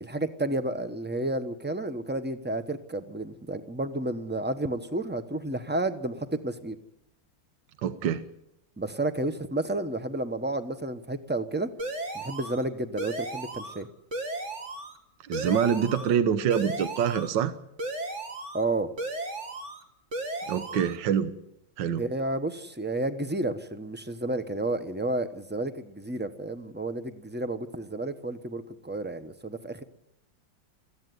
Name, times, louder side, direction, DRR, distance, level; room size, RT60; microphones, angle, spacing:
voice 1, 0.0-6.8 8.8-11.7 12.1-13.9 18.5-18.9 22.0-29.8, right 2 dB, 10° right, 10 dB, 0.6 m, -31 dB
voice 2, 7.8-8.2 15.3-17.5 20.5-21.3 21.8-22.0, right 8 dB, 70° right, 11 dB, 1.6 m, -25 dB
sound 1, 11.8-12.6 13.0-13.8 14.1-15.0 15.3-16.2 16.5-17.4 17.8-18.6 19.0-19.8 20.1-21.0, right 2 dB, 40° right, 2.3 m, -35 dB
21.5 x 15.0 x 9.4 m, 0.82 s
omnidirectional pair, 2.1 m